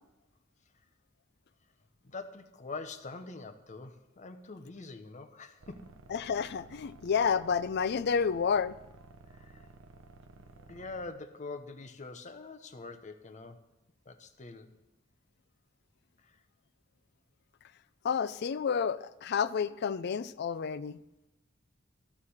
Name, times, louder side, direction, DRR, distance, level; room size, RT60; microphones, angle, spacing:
voice 1, 2.0-5.9 9.3-9.7 10.7-13.6 14.1-14.7 16.2-16.4, left 3 dB, 40° left, 7 dB, 0.8 m, -44 dB
sound 1, 5.6-11.1, right 3 dB, 90° right, 0.7 m, -54 dB
voice 2, 6.1-8.7 18.0-21.0, left 6 dB, 55° left, 15 dB, 0.4 m, -30 dB
13.0 x 4.9 x 7.1 m, 0.97 s
head